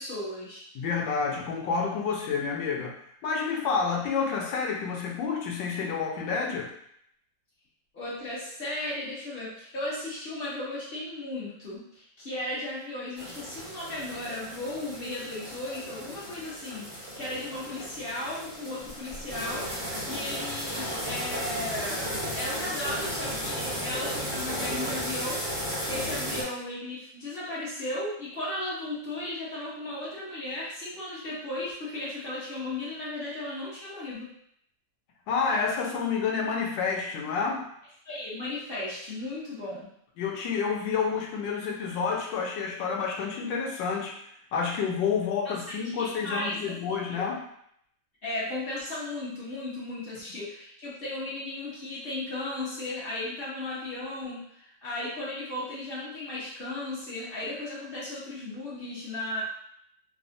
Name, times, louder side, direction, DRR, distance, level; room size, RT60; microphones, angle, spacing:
voice 1, 0.0-0.6 7.9-19.7 20.1-34.3 38.0-39.9 45.4-45.5 45.8-47.3 48.2-59.4, left 2 dB, 40° left, -8 dB, 0.8 m, -35 dB
voice 2, 0.7-2.9 3.2-6.7 35.3-37.7 40.2-44.2 44.5-47.4, left 5 dB, 80° left, 0 dB, 1.3 m, -29 dB
sound 1, 13.1-26.4, equal, 35° right, 0.5 m, -35 dB
3.3 x 2.0 x 2.5 m, 0.70 s
omnidirectional pair, 2.0 m